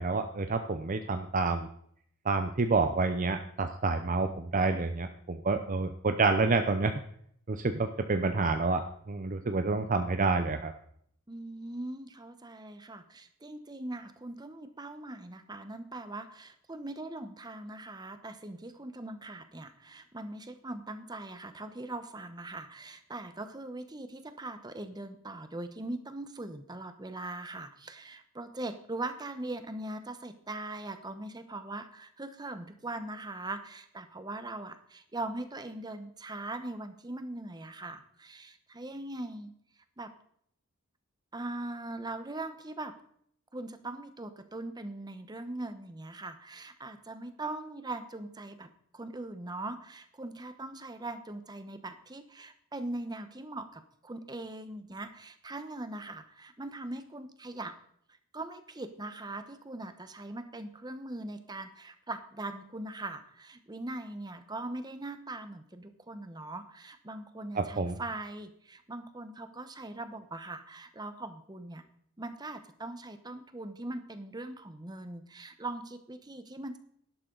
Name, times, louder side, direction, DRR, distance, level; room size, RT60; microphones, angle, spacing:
voice 1, 0.0-1.7 2.2-7.0 7.5-10.7 67.5-68.0, right 3 dB, 35° right, 8 dB, 0.6 m, -28 dB
voice 2, 11.3-39.5 40.0-40.1 41.3-42.9 43.5-48.7 48.9-57.7 58.3-71.8 72.2-76.8, right 2 dB, 20° right, 9 dB, 0.9 m, -41 dB
12.0 x 11.5 x 3.9 m, 0.67 s
head